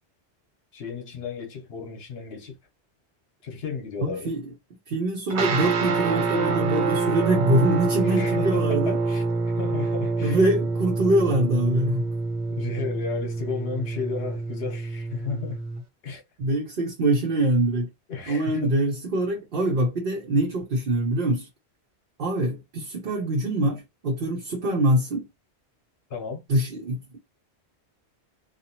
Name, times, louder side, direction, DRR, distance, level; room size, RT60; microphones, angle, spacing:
voice 1, 0.7-2.5 3.4-4.3 8.0-9.2 9.5-10.4 12.6-15.6 16.0-16.2 18.1-18.7 26.1-26.4, left 5 dB, 65° left, 1.0 m, -33 dB
voice 2, 4.0-4.5 4.9-9.0 10.2-12.0 16.4-17.9 18.3-21.5 22.2-25.2 26.5-27.0, right 1 dB, 55° right, 0.8 m, -24 dB
sound 1, 5.3-15.8, right 4 dB, 80° right, 1.0 m, -26 dB
2.8 x 2.4 x 2.8 m
omnidirectional pair, 1.1 m